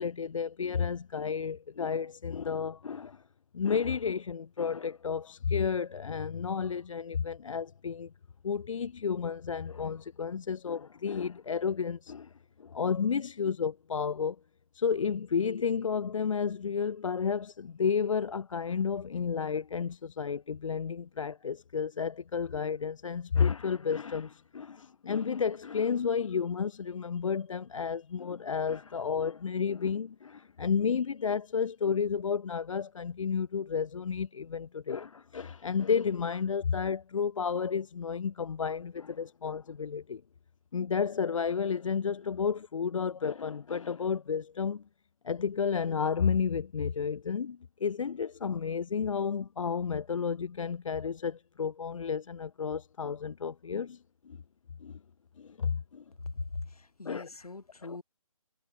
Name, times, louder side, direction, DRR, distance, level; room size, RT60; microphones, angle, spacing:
voice 1, 0.0-3.2 3.5-8.1 8.4-12.3 12.6-14.4 14.7-40.2 40.7-44.8 45.2-54.0 54.2-54.4 54.8-54.9 55.4-56.0 57.0-57.3 57.8-58.0, left 6 dB, 60° left, 0.4 m, -31 dB
voice 2, 56.3-58.0, left 3 dB, 80° left, 3.0 m, -41 dB
figure-of-eight pair, 160°, 19 cm